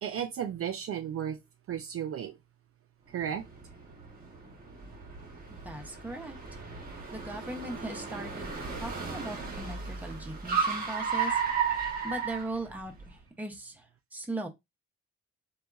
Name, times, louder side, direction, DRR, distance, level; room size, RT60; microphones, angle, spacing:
voice 1, 0.0-1.4 1.7-2.3 3.1-3.4, right 9 dB, 50° right, 0.4 m, -34 dB
Car, 3.2-13.1, right 6 dB, 30° right, 0.9 m, -34 dB
voice 2, 5.5-6.4 7.1-8.5 8.8-11.4 12.0-14.5, right 2 dB, 5° right, 0.6 m, -39 dB
2.8 x 2.3 x 2.3 m
cardioid pair, 90°, 30 cm